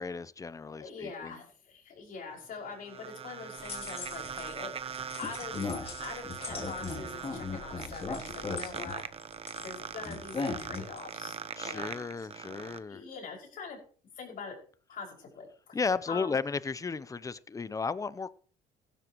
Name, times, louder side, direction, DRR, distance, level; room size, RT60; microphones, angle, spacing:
voice 1, 0.0-1.4 11.6-13.0 15.7-18.3, left 4 dB, 20° left, 0.6 m, -34 dB
voice 2, 0.8-4.7 5.2-5.6 6.0-9.0 9.6-11.4 11.6-12.3 12.6-13.8 14.2-14.6 14.9-15.8 16.1-16.4, left 5 dB, 55° left, 5.8 m, -43 dB
sound 1, 2.3-12.8, right 7 dB, 35° right, 0.9 m, -41 dB
sound 2, 3.6-4.6 4.9-9.7 10.0-11.1, left 4 dB, 35° left, 2.9 m, -38 dB
16.0 x 12.5 x 3.0 m
cardioid pair, 110°, 17 cm